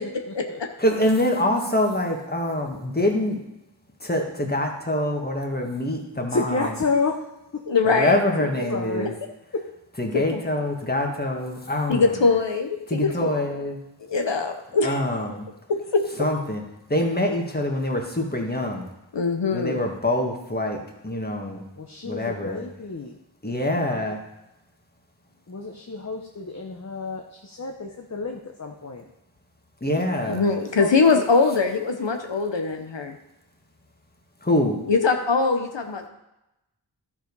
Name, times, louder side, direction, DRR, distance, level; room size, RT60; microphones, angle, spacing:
voice 1, 0.0-0.6 6.1-7.3 8.4-9.1 9.5-9.6 11.9-12.2 13.0-13.2 15.7-15.8 21.8-23.2 23.8-24.2 25.5-29.1 30.6-31.2, left 4 dB, 40° left, 2 dB, 0.9 m, -31 dB
voice 2, 0.8-3.4 4.0-6.4 7.9-9.1 10.0-12.0 12.9-13.7 14.8-15.3 16.2-16.6 16.9-18.9 19.5-20.8 21.0-21.6 22.0-22.6 23.4-24.2 29.8-30.4 34.4-34.8, left 1 dB, 20° left, 1 dB, 1.7 m, -25 dB
voice 3, 7.7-8.5 10.1-10.4 11.9-13.3 14.1-15.1 15.7-16.0 19.1-19.8 30.3-33.2 34.9-36.1, left 4 dB, 80° left, 4 dB, 0.9 m, -22 dB
12.0 x 5.0 x 5.4 m, 0.92 s
wide cardioid pair, 45°, 43 cm